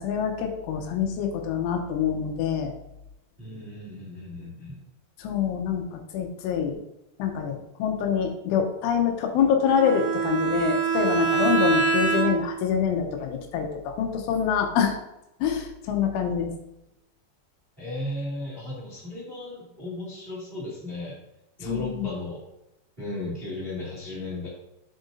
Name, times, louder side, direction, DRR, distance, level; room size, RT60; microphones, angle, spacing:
voice 1, 0.0-2.8 5.2-6.8 7.2-15.0 15.4-16.5 21.6-22.1, left 7 dB, 85° left, 3 dB, 3.3 m, -26 dB
voice 2, 3.4-4.8 17.8-21.2 21.6-22.4 23.0-24.5, left 2 dB, 25° right, -6 dB, 1.2 m, -35 dB
Bowed string instrument, 9.7-12.7, right 5 dB, 55° right, 0.9 m, -24 dB
7.9 x 7.2 x 2.7 m, 0.88 s
omnidirectional pair, 5.6 m